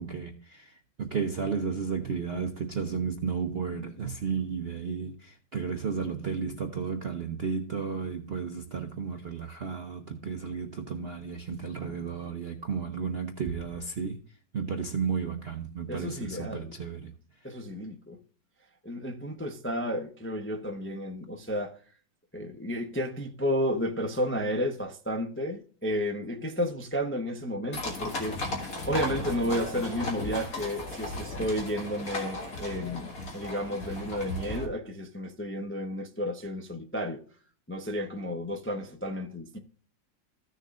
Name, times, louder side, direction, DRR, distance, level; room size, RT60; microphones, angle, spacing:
voice 1, 0.0-14.2 14.5-17.1, right 5 dB, 55° right, 0.6 m, -33 dB
voice 2, 15.9-16.8 17.4-18.2 18.8-21.8 22.3-28.4 28.9-37.2 37.7-39.6, equal, 15° left, 0.4 m, -32 dB
sound 1, 27.7-34.7, left 2 dB, 50° left, 2.2 m, -35 dB
15.0 x 6.7 x 2.5 m
omnidirectional pair, 2.0 m